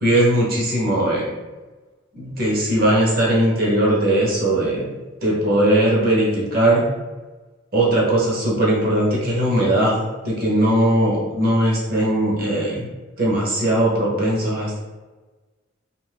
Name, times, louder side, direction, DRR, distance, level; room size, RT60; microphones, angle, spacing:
voice 1, 0.0-1.3 2.1-4.9 5.2-6.8 7.7-12.9 13.2-14.8, right 1 dB, 50° right, -4 dB, 0.9 m, -19 dB
2.5 x 2.5 x 3.3 m, 1.2 s
head